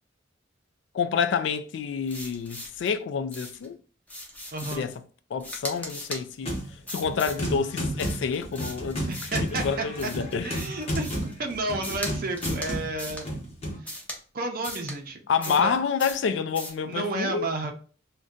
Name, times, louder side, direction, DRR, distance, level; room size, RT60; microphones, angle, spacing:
voice 1, 0.9-3.8 4.7-4.9 5.3-6.6 6.9-9.1 9.4-10.5 15.3-17.5, left 6 dB, 65° left, 0.3 m, -28 dB
sound 1, 2.1-2.9 3.3-3.7 4.1-4.9 5.4-6.2 6.9-7.4 8.0-9.5 10.0-11.3 11.8-12.1 12.4-12.7 13.0-13.2 13.8-14.2 14.6-14.9 15.4-15.7 16.0-16.2 16.5-16.8, left 1 dB, 10° left, 0.6 m, -38 dB
voice 2, 4.5-4.9 9.1-10.1 10.4-13.3 14.3-15.2 15.6-15.7 16.9-17.7, right 2 dB, 50° right, 0.5 m, -31 dB
sound 2, 6.4-6.7 7.0-13.8, equal, 35° left, 0.9 m, -32 dB
2.5 x 2.2 x 3.6 m
head